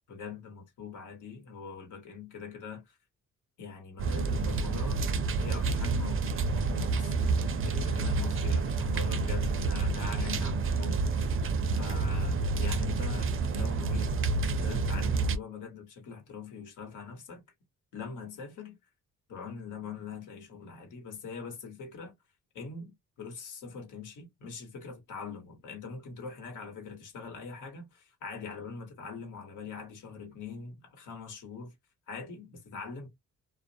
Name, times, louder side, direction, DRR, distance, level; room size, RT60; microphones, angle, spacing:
voice 1, 0.1-3.0 3.6-5.0 5.4-7.3 7.6-11.1 11.7-14.1 14.4-17.4 17.9-18.7 19.3-22.1 22.5-31.7 32.1-33.1, left 5 dB, 75° left, 1.1 m, -43 dB
sound 1, 4.0-15.4, right 4 dB, 45° right, 0.5 m, -29 dB
2.3 x 2.0 x 2.7 m
cardioid pair, 75°, 31 cm